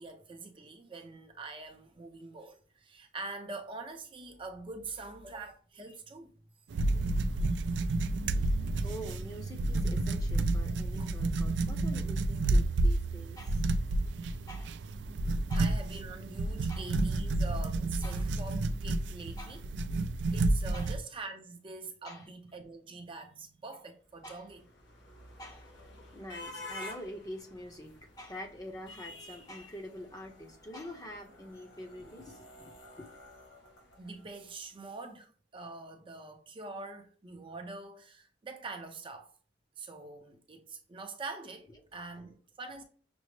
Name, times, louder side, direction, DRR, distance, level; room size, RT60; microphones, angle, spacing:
voice 1, 0.0-6.4 7.7-8.0 8.4-8.5 8.7-8.9 11.0-11.1 15.5-19.6 20.3-24.6 34.0-39.3 39.8-42.8, right 3 dB, 30° right, 0.5 m, -44 dB
sound 1, 6.7-21.0, right 2 dB, 75° right, 0.4 m, -30 dB
voice 2, 8.8-13.7 14.5-14.8 15.5-15.7 16.7-16.9 18.0-18.2 19.4-19.6 20.7-20.9 22.0-22.3 24.2-24.4 25.4-25.7 26.1-33.1 41.7-41.8, equal, 20° left, 0.7 m, -46 dB
sound 2, 24.2-34.5, left 2 dB, 85° left, 1.0 m, -50 dB
6.0 x 2.0 x 3.2 m
head